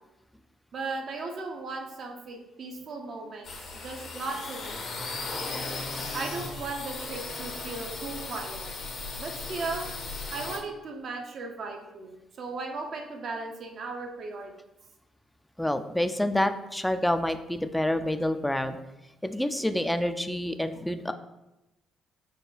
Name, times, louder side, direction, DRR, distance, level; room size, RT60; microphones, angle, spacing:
voice 1, 0.7-3.5 3.8-4.9 6.1-8.7 9.2-9.8 10.3-14.5, right 3 dB, 60° right, 3 dB, 0.6 m, -36 dB
sound 1, 3.4-10.6, left 3 dB, 60° left, 0.7 m, -36 dB
voice 2, 15.6-18.8 19.2-21.1, left 1 dB, 5° left, 9 dB, 0.3 m, -28 dB
4.4 x 2.2 x 3.2 m, 0.96 s
hypercardioid pair, 50°, 0 cm